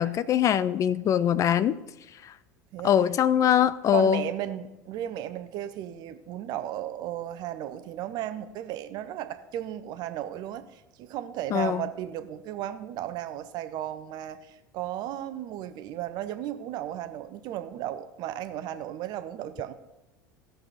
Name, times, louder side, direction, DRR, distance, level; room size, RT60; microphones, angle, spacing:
voice 1, 0.0-1.8 2.2-2.3 2.8-4.2 11.5-11.8, left 9 dB, 35° left, 16 dB, 0.4 m, -22 dB
voice 2, 3.9-19.7, right 12 dB, 45° right, 11 dB, 0.8 m, -35 dB
17.0 x 6.4 x 4.0 m, 1.0 s
figure-of-eight pair, 70°, 10 cm